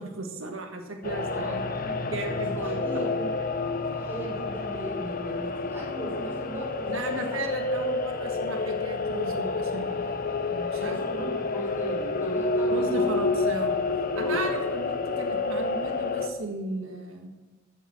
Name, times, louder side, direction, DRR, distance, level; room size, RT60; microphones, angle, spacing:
voice 1, 0.0-1.6 1.9-2.8 6.9-10.0 10.5-11.4 12.7-13.7 14.1-17.3, right 2 dB, 90° right, 3 dB, 1.7 m, -36 dB
sound 1, 1.0-16.3, left 3 dB, 45° left, 0.9 m, -29 dB
voice 2, 2.6-7.4 10.7-13.1 14.2-14.5 14.8-14.9, equal, 10° right, -5 dB, 5.4 m, -38 dB
14.5 x 7.1 x 7.3 m, 1.2 s
head